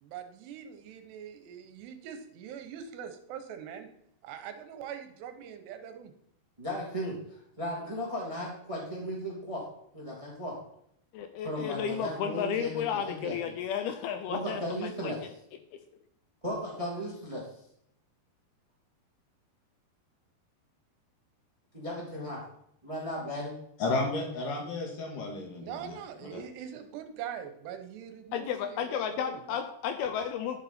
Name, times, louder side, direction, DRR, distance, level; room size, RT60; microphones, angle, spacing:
voice 1, 0.0-3.9 4.2-6.1 25.6-29.6 30.0-30.1, right 8 dB, 80° right, 7 dB, 3.1 m, -43 dB
voice 2, 6.6-7.2 7.6-9.6 9.9-10.5 11.4-13.5 14.3-15.2 16.4-17.5 21.7-22.4 22.8-23.5, equal, 15° right, -3 dB, 1.4 m, -36 dB
voice 3, 11.1-15.1 28.3-30.6, left 8 dB, 80° left, 8 dB, 2.4 m, -33 dB
voice 4, 23.8-26.4, left 3 dB, 60° left, 0 dB, 3.2 m, -33 dB
11.0 x 7.3 x 4.3 m, 0.72 s
omnidirectional pair, 4.8 m